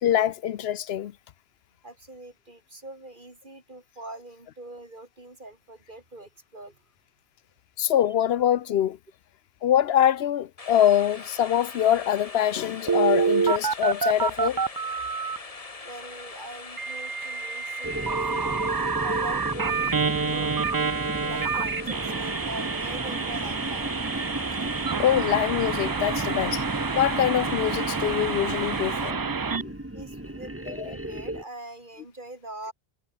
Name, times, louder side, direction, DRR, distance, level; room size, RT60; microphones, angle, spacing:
voice 1, 0.0-1.1 7.8-9.0 9.6-14.6 25.0-26.6 27.0-29.7 30.7-30.9, left 10 dB, 80° left, 0.9 m, -24 dB
voice 2, 1.8-6.8 15.8-18.6 19.0-20.0 20.2-20.6 21.2-23.9 29.9-32.7, right 2 dB, 50° right, 4.1 m, -43 dB
sound 1, 10.6-29.1, left 3 dB, 35° left, 1.5 m, -42 dB
Telephone, 12.9-15.4 16.8-29.6, right 5 dB, 35° right, 0.3 m, -28 dB
sound 2, 17.8-31.4, right 1 dB, 15° right, 1.7 m, -34 dB
omnidirectional pair, 1.0 m